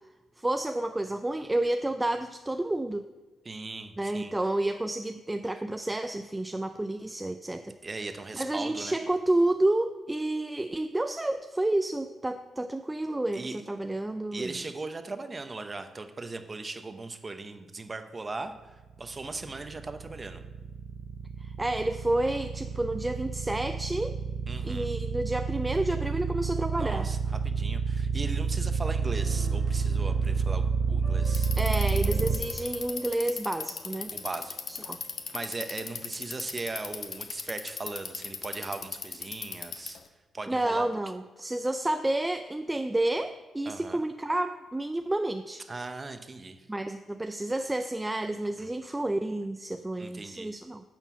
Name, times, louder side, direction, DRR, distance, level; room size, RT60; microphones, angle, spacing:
voice 1, 0.4-3.1 4.0-7.8 8.3-14.6 21.4-24.2 24.6-27.1 31.6-34.1 34.7-35.0 40.5-45.7 46.7-50.8, right 1 dB, 15° right, 8 dB, 0.4 m, -30 dB
voice 2, 3.4-4.3 7.8-9.0 13.3-13.6 14.3-20.4 24.5-24.9 26.8-31.5 34.1-34.9 35.3-40.0 40.3-40.9 43.7-44.0 45.7-46.7 48.6-48.7 50.0-50.5, right 3 dB, 30° right, 8 dB, 0.8 m, -38 dB
sound 1, 19.1-32.4, right 5 dB, 65° right, 0.6 m, -29 dB
Keyboard (musical), 29.1-36.6, equal, 25° left, 1.9 m, -50 dB
Bicycle, 31.2-40.1, left 6 dB, 60° left, 0.8 m, -37 dB
9.0 x 4.5 x 7.2 m, 1.2 s
cardioid pair, 75°, 0 cm